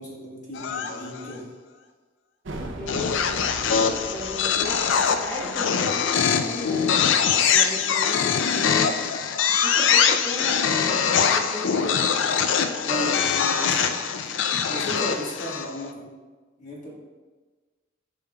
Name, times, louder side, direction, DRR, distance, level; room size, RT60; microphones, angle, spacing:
voice 1, 0.0-1.5 12.8-13.8 14.7-16.1 16.6-16.9, left 1 dB, 40° left, -5 dB, 1.6 m, -34 dB
sound 1, 0.5-1.3 2.9-15.8, left 7 dB, 80° left, 0.4 m, -23 dB
sound 2, 2.4-7.8, right 1 dB, 80° right, 0.7 m, -41 dB
voice 2, 2.8-3.3 4.1-6.8 7.5-8.9 9.5-12.0, left 1 dB, 10° left, -8 dB, 1.3 m, -35 dB
8.4 x 5.6 x 2.4 m, 1.3 s
head